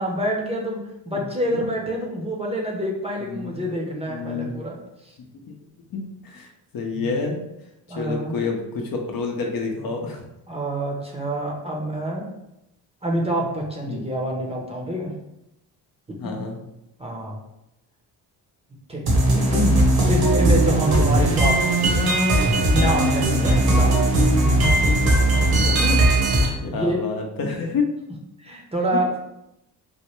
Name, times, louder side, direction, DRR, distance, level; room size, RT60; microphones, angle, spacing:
voice 1, 0.0-4.7 5.0-5.1 6.9-7.2 7.9-8.4 10.5-12.3 13.0-15.1 16.2-16.3 17.0-17.4 18.9-22.3 22.7-24.0 25.6-26.0 26.4-27.1 28.4-29.1, right 1 dB, 15° right, -2 dB, 0.6 m, -27 dB
voice 2, 3.2-3.6 4.1-4.5 5.9-6.5 6.7-7.4 8.0-10.2 13.8-14.0 16.2-16.6 26.0-26.1 26.6-27.9 28.9-29.0, left 4 dB, 55° left, 1 dB, 0.7 m, -28 dB
sound 1, 19.1-26.5, right 1 dB, 60° right, 0.9 m, -18 dB
3.2 x 2.1 x 3.0 m, 0.87 s
cardioid pair, 80°, 42 cm